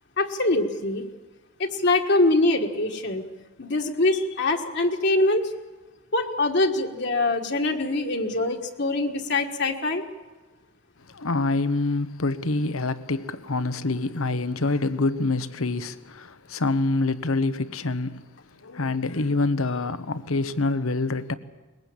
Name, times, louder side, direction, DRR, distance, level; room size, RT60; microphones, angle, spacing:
voice 1, 0.2-1.1 1.6-3.2 3.6-5.5 6.1-10.0, left 2 dB, 55° left, 1.7 m, -23 dB
voice 2, 11.1-18.2 18.6-21.3, left 3 dB, 80° left, 1.1 m, -26 dB
21.5 x 21.0 x 8.7 m
head